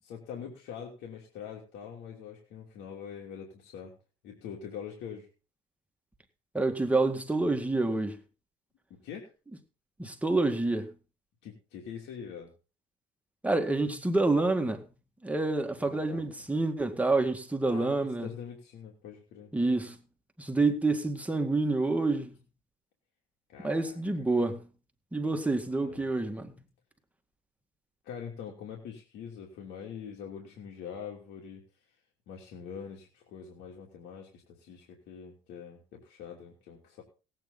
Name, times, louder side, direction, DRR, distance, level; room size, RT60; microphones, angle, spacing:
voice 1, 0.0-3.9 4.2-5.3 9.0-9.3 11.4-12.5 15.8-16.2 17.6-19.5 23.5-24.3 25.8-26.1 28.0-31.6 32.3-37.0, left 7 dB, 85° left, 3.1 m, -44 dB
voice 2, 6.5-8.2 10.0-10.9 13.4-14.9 15.2-18.3 19.5-20.0 20.4-22.4 23.6-24.6 25.1-26.6, right 2 dB, 10° right, 1.9 m, -28 dB
18.0 x 8.9 x 4.0 m
cardioid pair, 110°, 17 cm